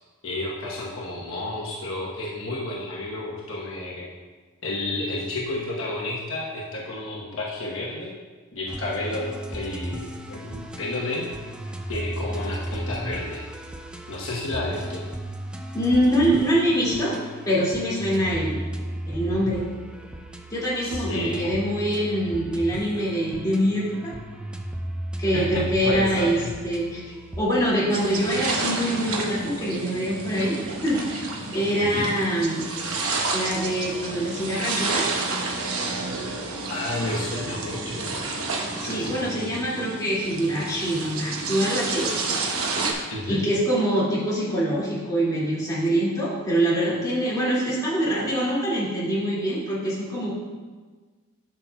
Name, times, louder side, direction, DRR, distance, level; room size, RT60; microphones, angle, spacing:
voice 1, 0.2-4.1 4.6-8.2 8.5-11.3 11.9-13.5 14.1-15.0 20.8-21.5 25.3-26.5 31.8-32.1 36.7-38.1 38.9-39.5 43.1-43.4, left 2 dB, 65° left, -4 dB, 1.1 m, -31 dB
sound 1, 8.7-27.4, right 1 dB, 5° right, 0.3 m, -35 dB
voice 2, 15.7-17.1 17.4-18.6 19.1-19.6 20.5-24.1 25.2-26.4 26.6-27.0 27.4-30.5 30.8-31.2 31.5-32.6 33.3-35.1 38.8-42.1 43.3-50.3, equal, 20° left, -8 dB, 2.3 m, -24 dB
sound 2, 27.9-42.9, right 3 dB, 80° right, 1.0 m, -30 dB
12.0 x 5.8 x 2.3 m, 1.4 s
head